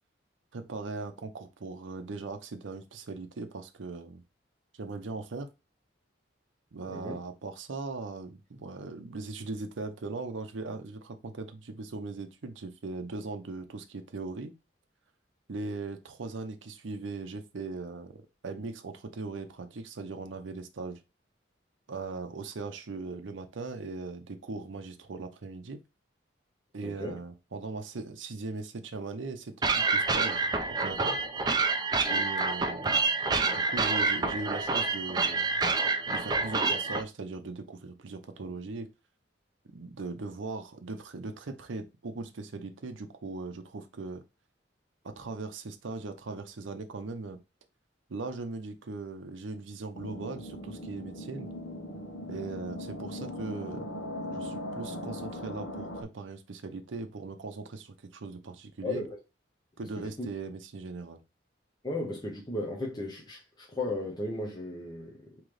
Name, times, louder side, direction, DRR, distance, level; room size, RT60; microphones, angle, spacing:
voice 1, 0.5-4.2 4.8-5.5 6.7-14.5 15.5-18.2 18.4-21.0 21.9-25.8 26.7-30.5 30.8-31.2 32.1-33.0 33.5-35.7 36.1-38.9 39.7-44.2 45.0-47.4 48.1-51.5 52.3-53.9 54.3-59.0 59.8-61.2, right 3 dB, 80° right, 0.6 m, -39 dB
voice 2, 6.9-7.2 26.8-27.2 58.8-59.2 60.0-60.3 61.8-65.4, left 2 dB, 20° left, 0.8 m, -35 dB
sound 1, 29.6-37.0, right 4 dB, 20° right, 0.4 m, -27 dB
sound 2, 49.9-56.0, left 1 dB, 80° left, 1.0 m, -39 dB
3.8 x 3.0 x 3.2 m
head